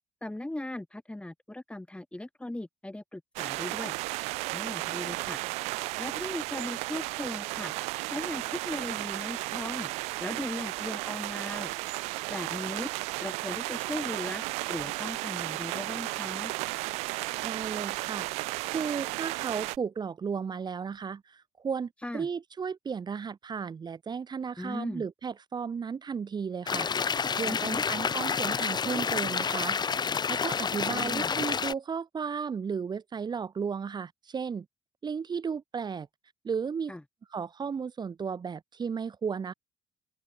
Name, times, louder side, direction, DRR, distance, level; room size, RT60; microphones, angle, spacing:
voice 1, 0.2-4.0 4.5-5.4 6.0-7.7 8.1-9.9 10.2-11.7 12.3-12.9 13.2-16.5 22.0-22.3 24.6-25.0 27.5-27.8 30.9-31.3 36.9-37.0, left 1 dB, 10° left, 2.3 m, -38 dB
sound 1, 3.4-19.8, right 24 dB, 75° right, 1.2 m, -34 dB
voice 2, 17.4-18.3 18.7-29.8 30.3-34.7 35.0-36.1 36.4-37.0 37.3-39.5, right 6 dB, 40° right, 1.9 m, -34 dB
sound 2, 26.7-31.7, left 6 dB, 40° left, 2.2 m, -29 dB
open air
hypercardioid pair, 55°, 11 cm